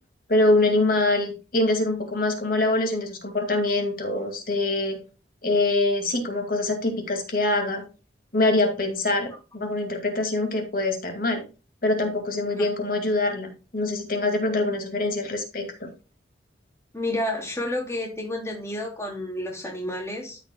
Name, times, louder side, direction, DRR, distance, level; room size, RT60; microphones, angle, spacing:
voice 1, 0.3-5.0 5.4-7.8 8.3-11.4 11.8-15.9, left 2 dB, 50° left, 4 dB, 2.2 m, -24 dB
voice 2, 16.9-20.4, left 1 dB, 15° left, -2 dB, 3.2 m, -30 dB
14.0 x 5.7 x 2.3 m, 0.32 s
head